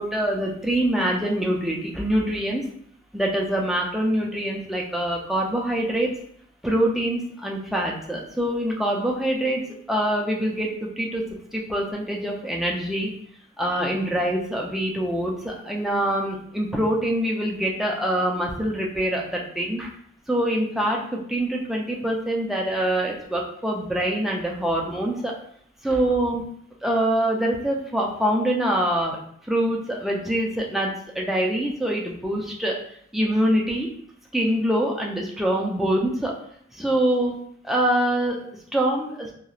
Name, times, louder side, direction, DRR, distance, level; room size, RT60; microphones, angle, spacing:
voice 1, 0.0-2.6 3.1-6.1 6.6-9.6 9.9-13.1 13.6-19.9 20.3-25.3 25.8-26.4 26.8-29.2 29.5-32.8 33.1-33.9 34.3-36.3 36.7-37.4 37.6-38.4 38.7-39.3, right 1 dB, ahead, -2 dB, 0.4 m, -24 dB
3.0 x 2.3 x 2.4 m, 0.65 s
head